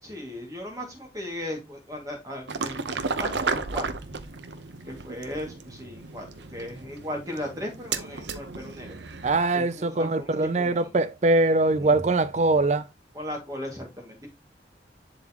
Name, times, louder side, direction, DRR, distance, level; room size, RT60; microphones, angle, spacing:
voice 1, 0.0-3.9 4.8-6.3 6.5-8.9 9.5-10.9 11.7-11.9 13.1-14.3, left 1 dB, 20° right, 2.2 m, -37 dB
sound 1, 2.5-9.5, right 4 dB, 75° right, 0.8 m, -34 dB
voice 2, 9.2-12.9, right 2 dB, 40° right, 0.4 m, -22 dB
11.0 x 4.0 x 3.0 m
head